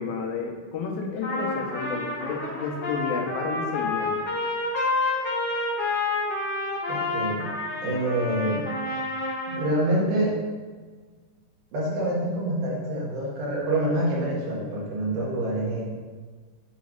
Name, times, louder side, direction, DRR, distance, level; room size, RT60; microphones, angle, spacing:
voice 1, 0.0-4.2, left 5 dB, 90° left, 0 dB, 2.7 m, -31 dB
Trumpet, 1.2-9.7, left 2 dB, 65° left, 1.0 m, -29 dB
voice 2, 6.9-7.5 7.8-8.7 9.5-10.4 11.7-15.9, right 1 dB, 80° right, -5 dB, 3.4 m, -26 dB
8.1 x 3.1 x 5.1 m, 1.4 s
omnidirectional pair, 4.2 m